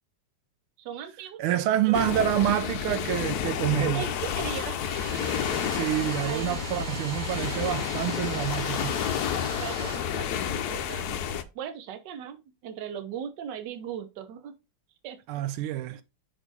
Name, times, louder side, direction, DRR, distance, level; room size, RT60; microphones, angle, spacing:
voice 1, 0.8-2.3 3.9-4.8 6.2-6.6 9.5-14.5 15.0-16.0, right 8 dB, 65° right, 1.4 m, -39 dB
voice 2, 1.4-4.1 5.7-8.9 15.3-16.0, right 12 dB, 85° right, 1.5 m, -27 dB
sound 1, 1.9-11.4, left 8 dB, 70° left, 0.9 m, -30 dB
Domestic sounds home sounds, 4.7-10.6, right 1 dB, 45° right, 1.7 m, -39 dB
6.0 x 4.3 x 4.0 m
omnidirectional pair, 2.3 m